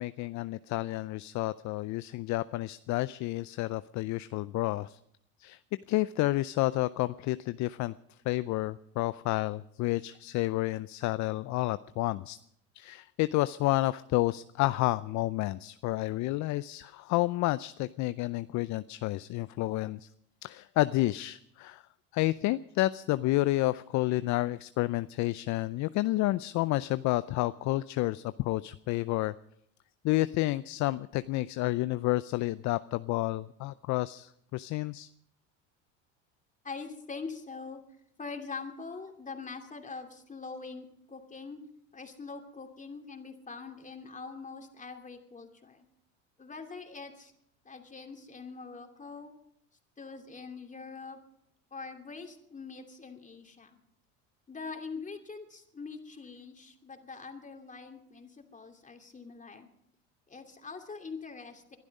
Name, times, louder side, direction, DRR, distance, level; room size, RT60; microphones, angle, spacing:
voice 1, 0.0-5.0 5.4-5.6 5.9-7.9 8.3-12.4 12.7-20.1 20.4-21.8 22.1-29.3 30.0-35.1, left 18 dB, 50° left, 15 dB, 0.5 m, -30 dB
voice 2, 36.6-37.8 38.2-41.6 41.9-45.8 46.4-47.3 47.6-49.3 50.0-51.2 51.7-53.8 54.5-59.7 60.3-61.8, left 4 dB, 20° left, 4 dB, 2.7 m, -43 dB
22.0 x 11.5 x 5.4 m, 0.74 s
hypercardioid pair, 90°, 38 cm